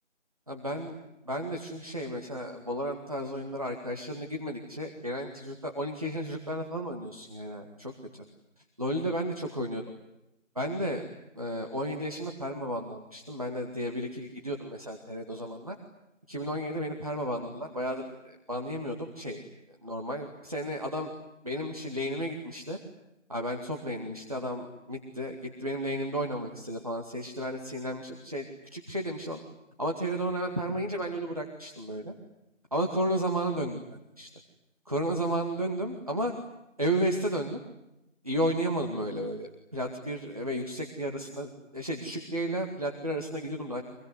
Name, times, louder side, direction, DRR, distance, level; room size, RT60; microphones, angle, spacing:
voice 1, 0.5-1.0 1.3-8.2 8.8-9.8 10.6-11.0 11.4-15.8 16.3-19.4 19.8-21.1 21.4-22.8 23.3-28.5 28.7-29.4 29.8-32.1 32.7-33.8 34.2-34.3 34.9-36.3 36.8-37.6 38.2-43.8, right 1 dB, 30° right, 2 dB, 2.1 m, -33 dB
25.5 x 23.0 x 9.6 m, 0.88 s
figure-of-eight pair, 180°, 38 cm